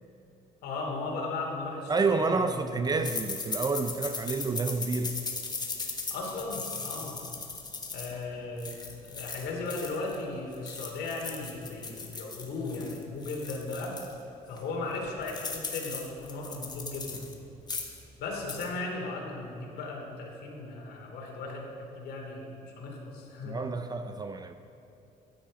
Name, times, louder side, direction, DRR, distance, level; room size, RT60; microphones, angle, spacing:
voice 1, 0.6-2.5 6.1-7.2 7.9-8.8 9.0-14.0 14.5-17.2 18.2-23.6, left 3 dB, 75° left, 0 dB, 2.7 m, -36 dB
voice 2, 1.9-5.2 23.5-24.5, right 4 dB, 25° right, 9 dB, 0.5 m, -29 dB
sound 1, 3.0-10.2 10.5-14.1 14.6-14.7 14.9-17.3 17.6-18.0 18.3-18.7, left 4 dB, 25° left, 1.4 m, -38 dB
12.5 x 9.2 x 5.1 m, 2.8 s
cardioid pair, 110°, 17 cm